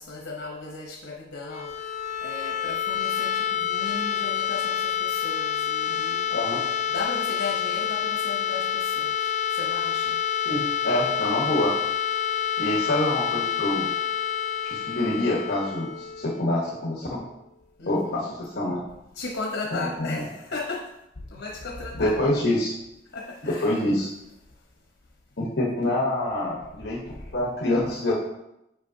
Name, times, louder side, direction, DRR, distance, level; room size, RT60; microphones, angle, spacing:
voice 1, 0.0-1.9 2.2-6.3 6.9-10.2 17.8-18.3 19.1-20.9 21.3-22.2 23.1-23.8 27.1-27.3, left 3 dB, 90° left, 0 dB, 0.8 m, -36 dB
sound 1, 1.4-17.2, left 9 dB, 40° left, 0.3 m, -28 dB
voice 2, 6.3-6.6 10.5-11.7 12.1-12.2 12.6-13.9 14.6-17.2 17.9-18.8 19.7-20.2 22.0-22.7 23.6-24.1 25.4-27.0 27.3-28.1, left 1 dB, 60° left, -3 dB, 1.1 m, -26 dB
8.1 x 4.9 x 2.7 m, 0.85 s
head